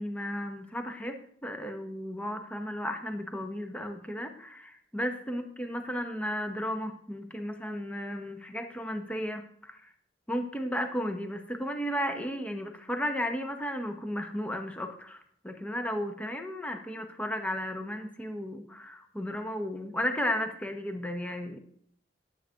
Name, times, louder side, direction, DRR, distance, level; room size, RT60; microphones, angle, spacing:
voice 1, 0.0-9.8 10.3-21.6, equal, 10° left, 5 dB, 0.9 m, -34 dB
20.0 x 8.2 x 2.5 m, 0.65 s
head